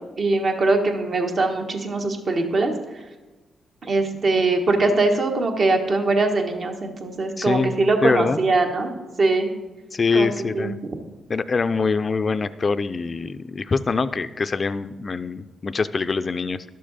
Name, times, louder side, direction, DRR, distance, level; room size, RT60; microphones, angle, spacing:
voice 1, 0.2-2.7 3.8-8.9 9.2-9.5 10.1-10.3 10.5-10.7, right 3 dB, 55° right, 3 dB, 1.2 m, -21 dB
voice 2, 7.4-7.8 8.0-8.4 9.9-10.8 11.3-16.6, left 4 dB, 45° left, 13 dB, 0.4 m, -24 dB
11.5 x 6.5 x 4.0 m, 1.2 s
cardioid pair, 65°, 0 cm